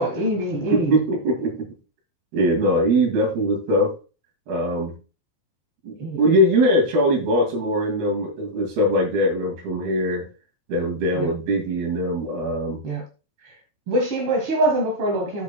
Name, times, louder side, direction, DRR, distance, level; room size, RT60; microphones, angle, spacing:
voice 1, 0.0-1.0 6.0-6.2 11.1-11.3 12.8-13.0 13.4-13.5 13.9-15.4, right 1 dB, 50° right, 0 dB, 1.8 m, -24 dB
voice 2, 0.7-1.7 2.3-3.9 4.5-4.9 5.8-10.3 10.7-12.8, equal, 75° right, 1 dB, 4.3 m, -21 dB
15.0 x 5.4 x 2.2 m, 0.32 s
omnidirectional pair, 4.6 m